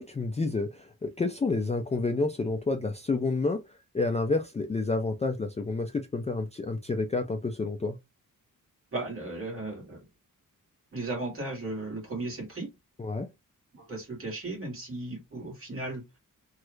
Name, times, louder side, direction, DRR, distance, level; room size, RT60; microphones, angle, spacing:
voice 1, 0.0-8.0 13.0-13.3, left 3 dB, 20° left, 0.4 m, -29 dB
voice 2, 8.9-10.0 10.9-12.7 13.7-16.0, right 2 dB, 40° right, 1.8 m, -36 dB
3.1 x 2.4 x 3.0 m
wide cardioid pair, 135°, 33 cm